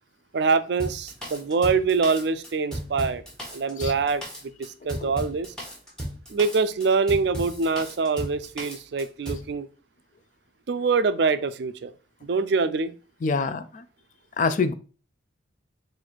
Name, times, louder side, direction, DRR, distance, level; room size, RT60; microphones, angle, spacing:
voice 1, 0.3-3.2 3.5-4.2 4.6-5.5 6.3-9.7 10.7-11.9 12.2-12.9, right 4 dB, 60° right, 0.4 m, -24 dB
Drum kit, 0.8-9.5, equal, 5° left, 1.1 m, -35 dB
voice 2, 13.2-13.8 14.4-14.7, left 4 dB, 40° left, 0.4 m, -25 dB
4.1 x 2.6 x 4.5 m
head